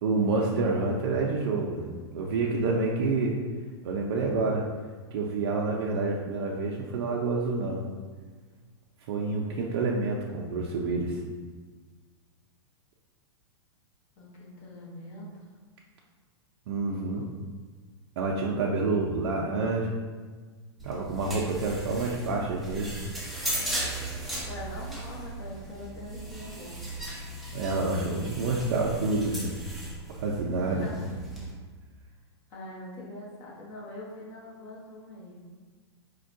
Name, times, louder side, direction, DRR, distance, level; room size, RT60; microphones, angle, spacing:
voice 1, 0.0-3.4 3.8-4.6 5.1-7.8 9.1-11.2 16.7-17.2 18.2-19.9 20.8-22.9 27.5-29.5 30.2-30.9, right 3 dB, 60° right, -2 dB, 0.5 m, -28 dB
voice 2, 14.2-15.3 24.5-26.7 30.7-31.5 32.5-35.4, left 1 dB, 35° left, -5 dB, 1.0 m, -43 dB
sound 1, 20.8-31.5, right 1 dB, ahead, 0.5 m, -37 dB
4.3 x 2.2 x 2.6 m, 1.4 s
hypercardioid pair, 150°, 14 cm